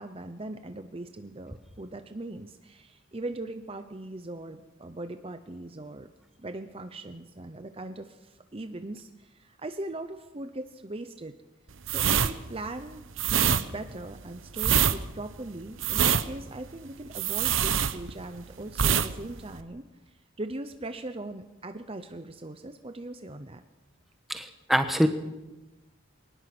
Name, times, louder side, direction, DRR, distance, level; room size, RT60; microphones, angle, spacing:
voice 1, 0.0-6.1 6.4-11.3 11.9-13.0 13.3-23.6, right 2 dB, 25° right, 8 dB, 0.8 m, -40 dB
sound 1, 11.8-18.4 18.7-19.1 19.4-19.6, right 8 dB, 65° right, 0.9 m, -25 dB
voice 2, 24.3-25.1, equal, ahead, 7 dB, 1.3 m, -24 dB
22.5 x 19.5 x 6.1 m, 1.1 s
head